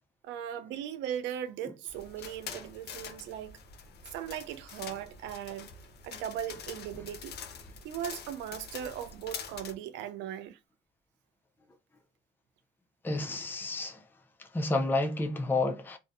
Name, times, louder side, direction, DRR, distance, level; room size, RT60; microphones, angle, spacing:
voice 1, 0.2-3.6 4.1-5.7 6.0-7.4 7.8-10.6, right 10 dB, 85° right, 0.4 m, -38 dB
sound 1, 1.9-9.7, left 6 dB, 65° left, 0.5 m, -45 dB
voice 2, 13.0-14.0 14.4-16.0, left 2 dB, 10° left, 0.4 m, -30 dB
2.6 x 2.0 x 2.5 m
supercardioid pair, 70°, 19 cm